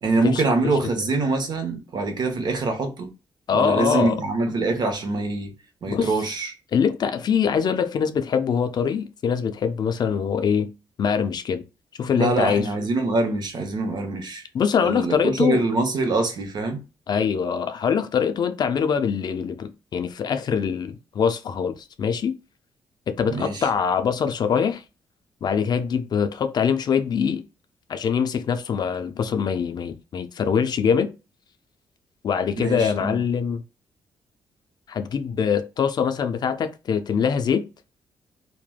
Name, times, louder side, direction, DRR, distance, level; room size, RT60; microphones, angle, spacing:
voice 1, 0.0-3.1 3.5-5.5 5.8-6.6 12.1-14.4 14.8-16.8 23.3-23.7 32.6-33.2, right 3 dB, 55° right, 0.8 m, -24 dB
voice 2, 3.5-4.1 5.9-6.1 6.7-10.7 11.0-11.6 12.0-12.6 14.5-15.6 17.1-22.3 23.1-24.8 25.4-27.4 27.9-31.1 32.2-33.6 34.9-37.6, left 7 dB, 55° left, 0.4 m, -23 dB
3.2 x 2.1 x 2.2 m
cardioid pair, 85°, 9 cm